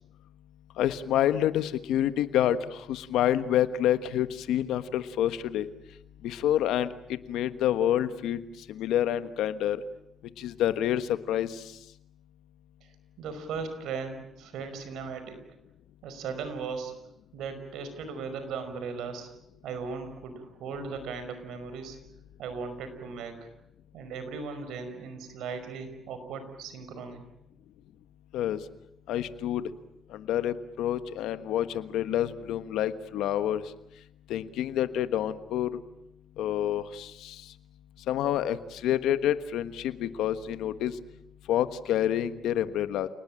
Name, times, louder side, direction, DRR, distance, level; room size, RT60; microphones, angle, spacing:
voice 1, 0.8-5.7 6.2-8.4 8.7-9.8 10.4-11.6 28.3-28.6 29.1-29.6 30.1-33.6 34.3-35.8 36.4-37.4 38.1-40.9 41.5-43.1, left 11 dB, 90° left, 11 dB, 1.3 m, -28 dB
voice 2, 13.2-15.4 16.0-16.9 17.3-19.3 19.6-22.0 22.4-23.5 23.9-27.2, right 5 dB, 85° right, 9 dB, 5.3 m, -37 dB
29.0 x 19.5 x 9.0 m, 0.85 s
cardioid pair, 90°, 0 cm